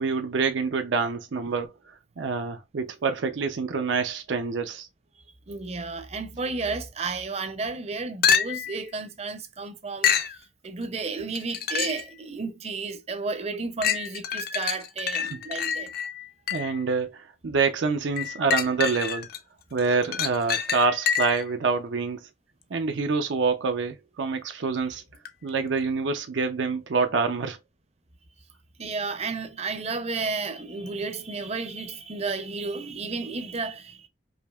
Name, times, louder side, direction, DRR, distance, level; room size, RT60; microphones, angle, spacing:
voice 1, 0.0-1.7 2.2-4.9 16.5-19.3 19.7-22.2 22.7-25.0 25.4-27.6, right 4 dB, 90° right, 0.5 m, -26 dB
voice 2, 5.5-15.9 28.8-34.1, right 4 dB, 35° right, 0.5 m, -32 dB
sound 1, 8.2-8.8 10.0-10.4 11.4-12.1 12.7-12.8 13.8-16.8 18.2-19.4 19.8-21.5 25.3-25.4, left 8 dB, 55° left, 0.5 m, -27 dB
5.0 x 2.8 x 2.3 m
head